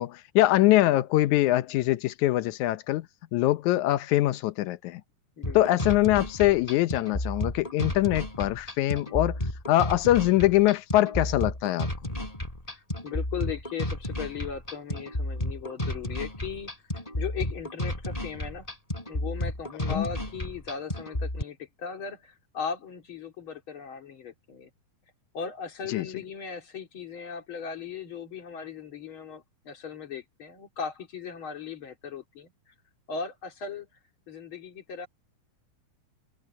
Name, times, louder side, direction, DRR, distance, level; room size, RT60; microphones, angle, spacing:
voice 1, 0.0-3.1 3.3-5.0 5.5-9.4 9.7-11.9 19.9-20.0 25.9-26.0, left 16 dB, 85° left, 1.7 m, -23 dB
sound 1, 5.4-21.4, left 1 dB, 10° left, 5.1 m, -32 dB
voice 2, 12.7-16.7 17.2-18.7 19.1-24.7 25.3-32.7 33.1-33.9 34.3-35.1, left 6 dB, 35° left, 3.1 m, -37 dB
omnidirectional pair, 4.4 m